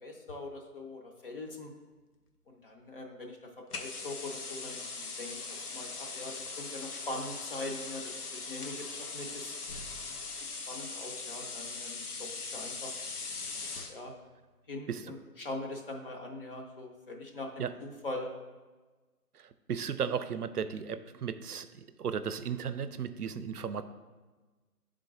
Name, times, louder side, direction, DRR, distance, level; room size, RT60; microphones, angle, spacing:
voice 1, 0.0-1.7 2.5-9.5 10.7-12.9 13.9-14.1 14.7-18.3, left 2 dB, 35° left, 1 dB, 0.8 m, -42 dB
sound 1, 3.7-14.0, left 4 dB, 70° left, 0.9 m, -40 dB
sound 2, 6.5-6.9 7.6-7.7 8.5-8.6 9.1-11.1, equal, 85° left, 1.3 m, -54 dB
voice 2, 19.3-23.8, right 7 dB, 75° right, 12 dB, 0.6 m, -35 dB
10.5 x 3.8 x 3.7 m, 1.3 s
figure-of-eight pair, 140°, 46 cm